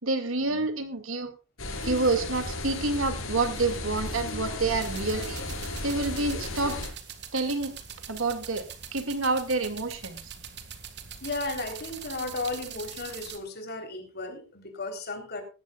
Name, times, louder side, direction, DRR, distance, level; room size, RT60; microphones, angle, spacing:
voice 1, 0.0-1.3 1.8-5.4 5.8-6.8 7.3-7.7 8.1-8.6 8.9-10.2, right 3 dB, 85° right, 9 dB, 2.4 m, -28 dB
sound 1, 1.6-6.9, left 2 dB, 80° left, 5.7 m, -34 dB
sound 2, 4.8-13.4, right 8 dB, 60° right, 1.9 m, -43 dB
voice 2, 11.2-15.4, left 3 dB, 55° left, 6 dB, 3.9 m, -34 dB
18.5 x 14.0 x 2.4 m, 0.31 s
head